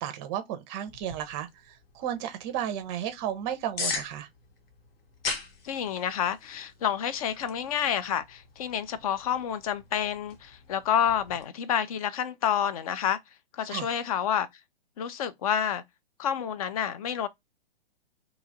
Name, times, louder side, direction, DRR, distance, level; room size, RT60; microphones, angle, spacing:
voice 1, 0.0-4.3 13.7-14.0, right 10 dB, 25° right, 0.5 m, -34 dB
sound 1, 0.9-11.4, left 4 dB, 65° left, 0.9 m, -41 dB
voice 2, 5.6-13.2 13.5-14.5 15.0-15.8 16.2-17.3, left 9 dB, 35° left, 0.4 m, -29 dB
2.9 x 2.3 x 4.0 m
hypercardioid pair, 125°, 31 cm